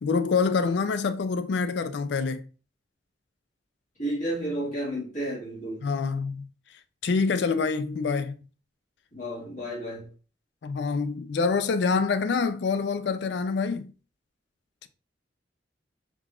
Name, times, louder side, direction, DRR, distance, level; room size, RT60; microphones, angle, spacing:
voice 1, 0.0-2.5 5.8-6.5 7.0-8.3 10.6-13.9 14.8-14.9, left 4 dB, 65° left, 0.4 m, -26 dB
voice 2, 4.0-5.8 9.1-10.1, right 1 dB, 45° left, 1.5 m, -32 dB
3.8 x 3.0 x 2.4 m
head